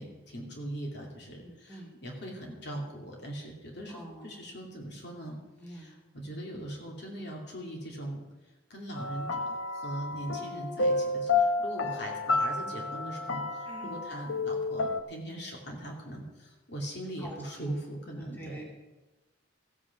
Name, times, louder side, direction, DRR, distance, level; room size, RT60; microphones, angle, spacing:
voice 1, 0.0-5.4 5.7-8.2 8.7-18.6, right 1 dB, 55° left, 0 dB, 2.6 m, -40 dB
voice 2, 1.4-1.9 3.9-4.2 5.6-6.0 13.7-14.0 17.2-17.8 18.2-18.6, right 1 dB, 10° left, -2 dB, 2.3 m, -46 dB
sound 1, 9.0-15.0, left 3 dB, 80° left, 0.8 m, -30 dB
14.5 x 9.0 x 6.0 m, 1.1 s
head